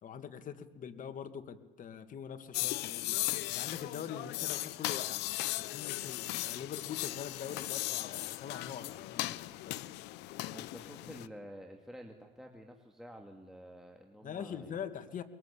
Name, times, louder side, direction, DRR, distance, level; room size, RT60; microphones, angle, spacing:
voice 1, 0.0-3.2 3.5-5.2 5.6-9.8 14.2-15.2, left 8 dB, 50° left, 9 dB, 2.1 m, -43 dB
sound 1, 2.5-11.3, left 17 dB, 90° left, 0.8 m, -37 dB
voice 2, 10.5-14.8 15.2-15.3, equal, ahead, 2 dB, 2.5 m, -50 dB
23.5 x 22.5 x 8.6 m, 1.1 s
cardioid pair, 110°, 17 cm